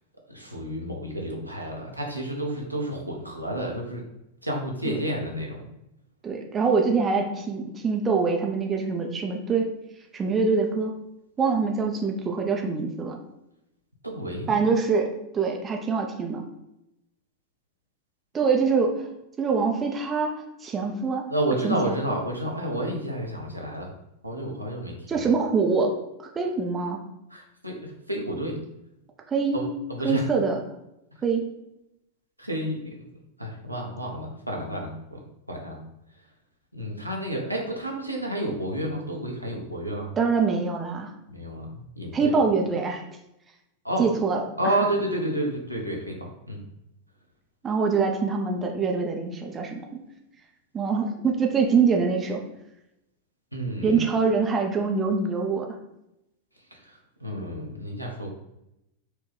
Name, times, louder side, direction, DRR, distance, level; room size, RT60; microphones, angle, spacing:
voice 1, 0.3-4.0 4.4-5.6 14.0-14.6 21.3-23.9 24.2-25.3 27.3-28.6 29.5-29.7 30.0-30.3 32.4-32.9 33.4-35.2 35.5-35.8 36.7-40.1 41.3-42.3 43.8-44.1 44.6-46.6 53.5-54.0 56.8-58.3, right 1 dB, 90° right, -1 dB, 0.7 m, -30 dB
voice 2, 6.2-9.7 10.1-10.9 11.4-13.2 14.5-16.4 18.3-19.1 19.4-20.3 20.6-21.3 21.6-22.0 25.1-25.9 26.2-27.0 29.3-29.7 30.0-30.6 31.2-31.4 40.2-41.1 42.1-43.0 44.0-44.7 47.6-49.9 50.7-52.4 53.8-55.8, right 5 dB, 20° right, 2 dB, 0.5 m, -24 dB
4.2 x 2.3 x 3.2 m, 0.86 s
figure-of-eight pair, 90°, 0 cm